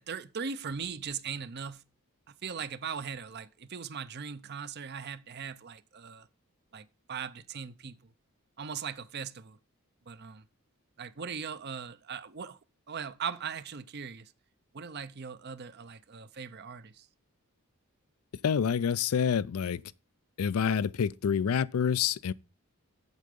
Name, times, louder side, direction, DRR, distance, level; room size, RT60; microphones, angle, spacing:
voice 1, 0.0-1.8 2.4-6.3 6.7-8.0 8.6-9.6 10.1-10.4 11.0-12.6 12.9-14.3 14.7-17.1, right 6 dB, 50° right, 0.6 m, -39 dB
voice 2, 18.4-19.8 20.4-22.3, left 7 dB, 80° left, 0.4 m, -27 dB
8.2 x 7.6 x 5.2 m
head